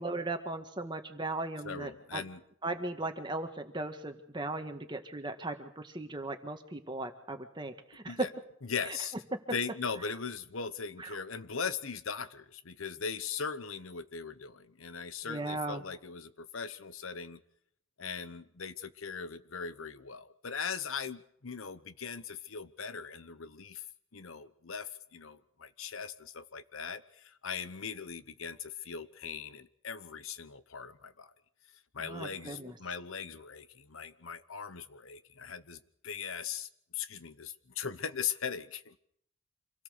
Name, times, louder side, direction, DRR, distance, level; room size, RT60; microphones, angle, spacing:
voice 1, 0.0-2.2 2.6-8.3 8.8-9.0 11.0-11.2 15.3-15.8 32.0-32.7, right 2 dB, 20° right, 6 dB, 1.7 m, -37 dB
voice 2, 1.6-2.4 8.1-8.3 8.7-9.1 9.5-17.4 18.0-23.8 24.1-31.3 31.9-38.9, left 6 dB, 75° left, 13 dB, 1.0 m, -39 dB
26.5 x 17.5 x 6.6 m, 0.70 s
head